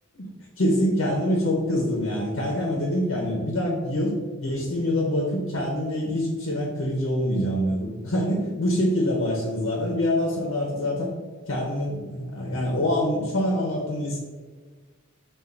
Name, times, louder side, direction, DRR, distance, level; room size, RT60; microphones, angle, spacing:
voice 1, 0.6-4.1 4.4-11.1 11.5-14.2, left 1 dB, 70° left, -2 dB, 0.8 m, -25 dB
4.5 x 2.4 x 3.8 m, 1.4 s
head